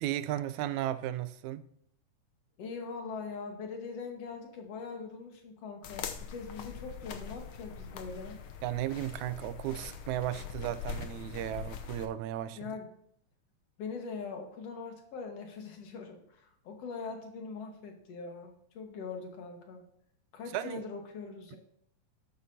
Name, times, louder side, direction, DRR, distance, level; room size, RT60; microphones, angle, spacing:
voice 1, 0.0-1.6 8.6-12.8 20.5-20.8, right 12 dB, 80° right, 13 dB, 1.9 m, -35 dB
voice 2, 2.6-8.4 12.6-12.9 13.8-19.8 20.3-21.6, left 4 dB, 60° left, 3 dB, 2.5 m, -42 dB
sound 1, 5.8-12.1, left 7 dB, 90° left, 1.1 m, -43 dB
12.5 x 11.0 x 2.8 m, 0.69 s
omnidirectional pair, 3.4 m